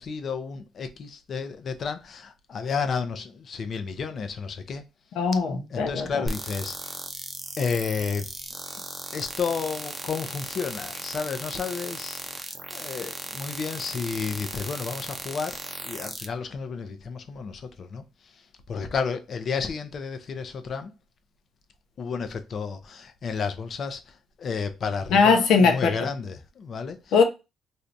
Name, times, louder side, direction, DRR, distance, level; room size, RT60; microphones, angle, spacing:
voice 1, 0.0-4.8 5.7-6.9 7.6-8.3 9.1-18.0 18.7-20.9 22.0-27.1, left 5 dB, 55° left, 0.6 m, -32 dB
voice 2, 5.2-6.2 25.1-25.9 27.1-27.2, left 5 dB, 85° left, 0.8 m, -20 dB
sound 1, 6.3-16.3, right 2 dB, 20° right, 0.6 m, -37 dB
3.3 x 2.6 x 2.6 m
cardioid pair, 90°, 0 cm